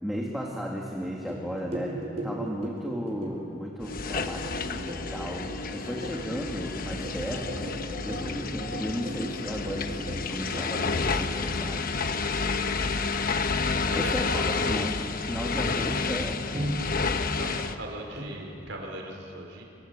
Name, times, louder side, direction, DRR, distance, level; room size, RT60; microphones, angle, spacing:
voice 1, 0.0-7.7 8.0-12.0 13.9-15.0 15.3-16.5, equal, ahead, -2 dB, 2.0 m, -35 dB
sound 1, 1.3-12.5 15.4-15.5 15.9-17.6 18.2-18.5, right 1 dB, 35° right, 5.3 m, -38 dB
sound 2, 3.8-17.8, left 4 dB, 45° left, 1.0 m, -30 dB
voice 2, 5.8-6.1 10.1-10.5 12.4-12.9 13.8-14.8 17.2-19.6, right 1 dB, 70° right, 1 dB, 4.9 m, -41 dB
25.5 x 25.5 x 8.3 m, 2.7 s
head